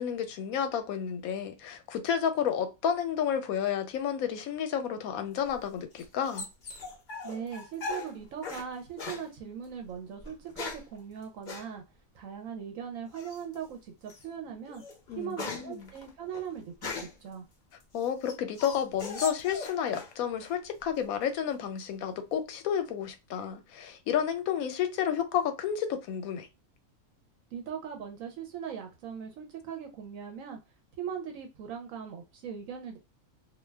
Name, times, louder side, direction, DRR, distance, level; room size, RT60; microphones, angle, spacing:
voice 1, 0.0-6.5 15.1-15.9 17.9-26.5, left 8 dB, 80° left, 1.0 m, -31 dB
sound 1, 5.4-8.7 9.0-9.3 10.2-10.9 11.5-11.7 13.1-13.5 14.1-14.2 14.7-17.3 17.8-20.1 20.4-21.0, left 4 dB, 45° left, 0.7 m, -40 dB
voice 2, 7.2-11.8 12.1-14.8 15.2-17.4 27.5-30.6 31.0-33.0, right 8 dB, 75° right, 1.0 m, -40 dB
2.5 x 2.2 x 3.2 m
omnidirectional pair, 1.5 m